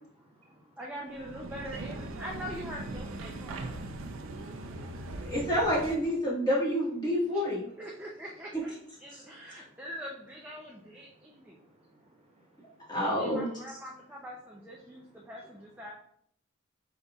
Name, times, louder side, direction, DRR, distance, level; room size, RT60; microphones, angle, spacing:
voice 1, 0.1-0.8 1.6-1.8 9.2-9.8 11.0-12.9 14.9-15.3, right 3 dB, 30° right, -3 dB, 1.1 m, -60 dB
voice 2, 0.8-3.8 7.3-7.5 7.8-11.6 13.0-15.9, equal, 10° right, -3 dB, 0.5 m, -43 dB
sound 1, 1.1-6.2, right 2 dB, 65° right, 0.5 m, -40 dB
voice 3, 5.2-7.7 12.9-13.5, equal, 20° left, -6 dB, 1.4 m, -28 dB
4.9 x 4.0 x 2.3 m, 0.67 s
head